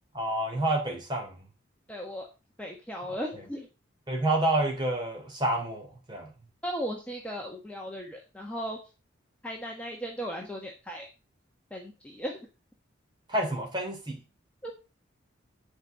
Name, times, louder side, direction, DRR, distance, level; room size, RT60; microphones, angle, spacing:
voice 1, 0.1-1.3 4.1-6.3 13.3-14.2, right 1 dB, 20° right, 3.1 m, -28 dB
voice 2, 1.9-2.3 2.6-3.7 6.6-8.8 9.4-11.1 11.7-12.5 14.6-14.7, equal, 5° left, 1.3 m, -36 dB
9.9 x 5.3 x 6.4 m
head